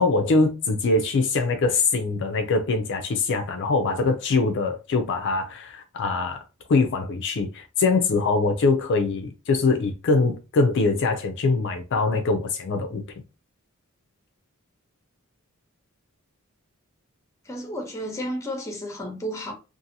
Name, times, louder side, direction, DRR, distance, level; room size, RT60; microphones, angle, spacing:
voice 1, 0.0-13.0, left 3 dB, 55° left, 0.4 m, -23 dB
voice 2, 17.5-19.5, equal, 15° left, 0.7 m, -32 dB
2.6 x 2.5 x 2.6 m
head